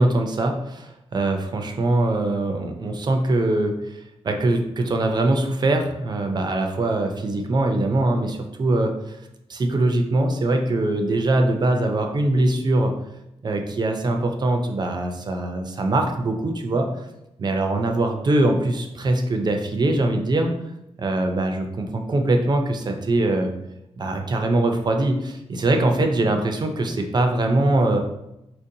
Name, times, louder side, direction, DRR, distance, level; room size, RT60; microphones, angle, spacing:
voice 1, 0.0-3.8 4.2-8.9 9.5-12.9 13.4-16.9 17.4-20.5 21.0-23.5 24.0-28.0, right 2 dB, 40° right, 4 dB, 0.4 m, -22 dB
4.2 x 2.6 x 2.7 m, 0.86 s
wide cardioid pair, 110°, 11 cm